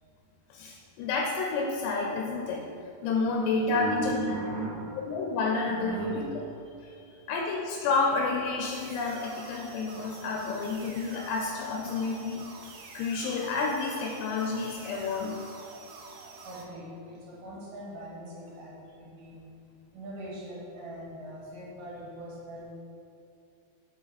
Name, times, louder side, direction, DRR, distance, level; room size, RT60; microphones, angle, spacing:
voice 1, 0.5-2.6 3.0-4.2 5.0-6.2 7.3-12.7 12.9-15.5, left 4 dB, 80° left, 0 dB, 2.7 m, -30 dB
voice 2, 3.0-5.0 5.7-6.3 6.8-7.2 11.1-11.2 16.4-19.4 19.9-22.7, right 2 dB, 65° right, -6 dB, 3.0 m, -39 dB
sound 1, 8.6-16.6, right 4 dB, 85° right, 2.0 m, -47 dB
7.6 x 4.5 x 4.1 m, 2.6 s
omnidirectional pair, 5.0 m